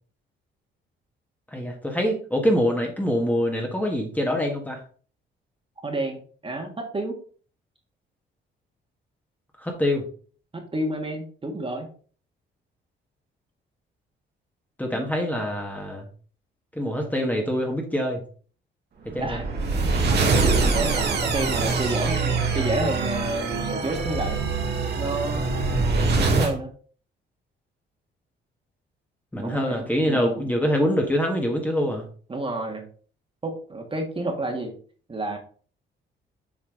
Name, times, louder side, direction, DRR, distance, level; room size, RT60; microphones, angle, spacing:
voice 1, 1.5-4.8 9.6-10.1 14.8-16.1 16.7-18.2 19.0-19.4 29.3-32.0, equal, 10° left, 1 dB, 1.6 m, -25 dB
voice 2, 5.8-7.2 10.5-11.9 19.1-19.5 19.8-24.4 25.0-25.4 26.2-26.7 29.4-30.4 32.3-32.8 33.4-34.7 35.1-35.4, right 2 dB, 25° right, 3 dB, 1.8 m, -30 dB
sound 1, 19.1-26.5, right 3 dB, 55° right, 1.9 m, -24 dB
7.5 x 4.4 x 3.8 m, 0.42 s
cardioid pair, 90°, 20 cm